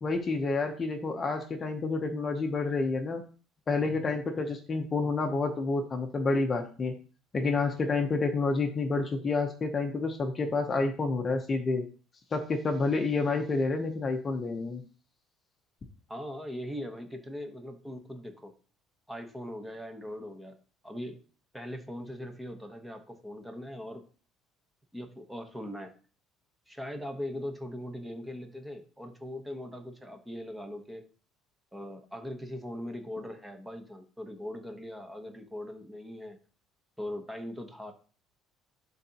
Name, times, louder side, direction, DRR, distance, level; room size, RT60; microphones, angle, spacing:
voice 1, 0.0-3.2 3.7-6.9 7.3-11.8 12.3-14.8, left 3 dB, 25° left, 5 dB, 0.8 m, -29 dB
voice 2, 16.1-18.5 19.1-20.6 20.8-21.2 21.5-24.0 24.9-26.0 26.7-31.0 31.7-36.4 37.0-37.9, left 1 dB, 5° right, 5 dB, 1.0 m, -40 dB
11.0 x 3.9 x 2.9 m, 0.38 s
cardioid pair, 145°, 0 cm